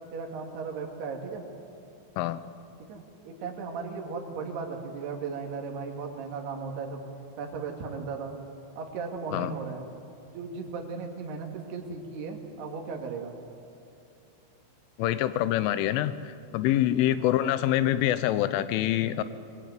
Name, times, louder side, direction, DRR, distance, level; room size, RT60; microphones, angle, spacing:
voice 1, 0.1-1.5 2.9-7.1 7.4-8.3 8.8-9.8 10.3-13.3 17.2-17.4, right 5 dB, 60° right, 1 dB, 4.2 m, -36 dB
voice 2, 15.0-19.2, left 12 dB, 85° left, 13 dB, 3.4 m, -25 dB
25.0 x 21.0 x 9.4 m, 2.5 s
omnidirectional pair, 5.6 m